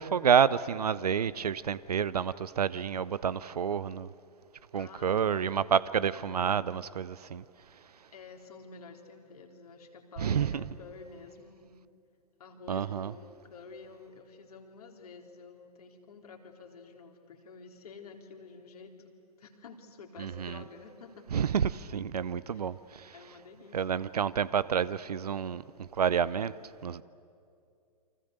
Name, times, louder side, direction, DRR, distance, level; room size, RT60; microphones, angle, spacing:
voice 1, 0.0-4.1 4.7-7.4 10.2-10.6 12.7-13.1 20.2-20.6 21.3-23.1 23.7-26.5 26.8-27.0, right 7 dB, 70° right, 0.7 m, -29 dB
voice 2, 4.7-5.9 8.1-11.7 12.4-21.3 22.5-22.7 23.1-23.8, left 4 dB, 65° left, 3.6 m, -50 dB
29.0 x 25.0 x 8.0 m
figure-of-eight pair, 110°, 20 cm